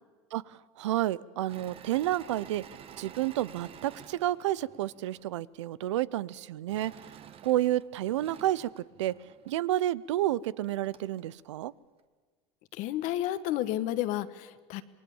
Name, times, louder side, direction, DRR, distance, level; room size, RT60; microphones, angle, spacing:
voice 1, 0.3-2.6 3.0-6.9 7.4-9.1 9.5-11.7, right 14 dB, 85° right, 20 dB, 0.6 m, -30 dB
Engine / Mechanisms, 1.5-5.3 6.7-9.6 10.3-10.4 10.6-11.2, right 8 dB, 40° right, 1.4 m, -51 dB
voice 2, 12.7-14.8, left 13 dB, 60° left, 12 dB, 1.4 m, -31 dB
27.5 x 20.0 x 7.1 m, 1.5 s
hypercardioid pair, 100°, 15 cm